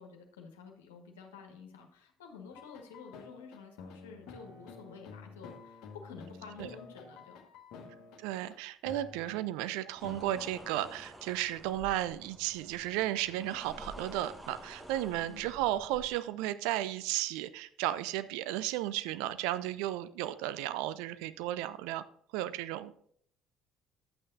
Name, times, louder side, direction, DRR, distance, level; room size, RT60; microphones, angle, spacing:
voice 1, 0.0-7.5 7.7-8.0 15.3-15.5, left 5 dB, 75° left, 2 dB, 1.5 m, -50 dB
sound 1, 2.5-8.6 8.8-9.7 10.0-10.9, left 5 dB, 60° left, 1.3 m, -51 dB
voice 2, 8.2-22.0 22.3-23.1, right 14 dB, 65° right, 14 dB, 0.5 m, -34 dB
sound 2, 9.9-16.1, right 1 dB, 15° right, 1.2 m, -50 dB
11.0 x 8.6 x 2.6 m, 0.63 s
figure-of-eight pair, 55°, 0 cm